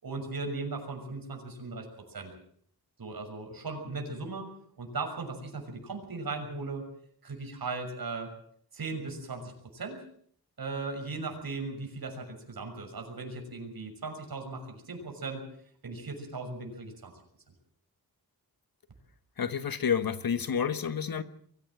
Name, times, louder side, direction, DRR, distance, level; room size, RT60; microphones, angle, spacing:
voice 1, 0.0-2.3 3.0-4.5 4.8-6.8 7.2-8.3 8.7-10.0 10.6-15.4 15.8-17.1, right 3 dB, 65° right, 4 dB, 6.5 m, -37 dB
voice 2, 19.4-21.2, left 7 dB, 65° left, 11 dB, 1.4 m, -29 dB
23.5 x 15.5 x 7.8 m, 0.62 s
wide cardioid pair, 125°, 39 cm